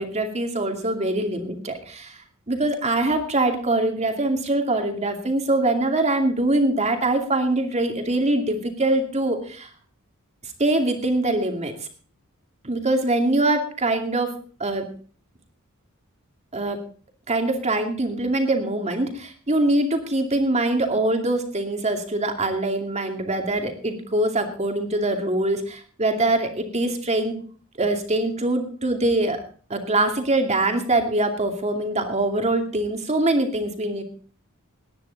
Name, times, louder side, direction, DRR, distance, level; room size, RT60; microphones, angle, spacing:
voice 1, 0.0-2.2 2.5-9.7 10.6-11.7 12.6-14.3 14.6-14.9 16.5-16.8 17.3-27.4 27.8-29.4 29.7-34.0, right 2 dB, 30° right, 4 dB, 2.5 m, -23 dB
19.0 x 10.0 x 4.0 m, 0.43 s
head